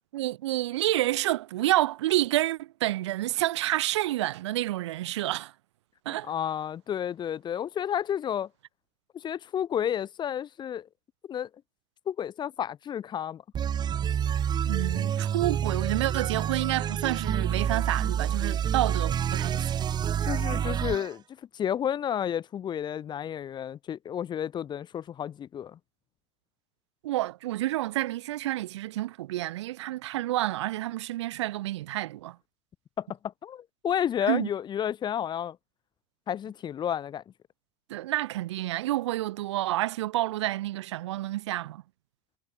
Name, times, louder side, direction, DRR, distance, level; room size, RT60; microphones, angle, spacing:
voice 1, 0.1-5.5 6.1-6.3 14.7-19.9 27.0-32.4 34.3-34.5 37.9-41.8, right 16 dB, 85° right, 3.6 m, -29 dB
voice 2, 6.3-8.5 9.1-10.9 11.3-11.5 12.1-13.4 20.2-21.2 21.5-25.8 33.0-33.1 33.4-35.6 36.3-37.2, left 9 dB, 30° left, 5.7 m, -31 dB
sound 1, 13.5-21.1, right 9 dB, 30° right, 2.5 m, -28 dB
supercardioid pair, 125°, 14 cm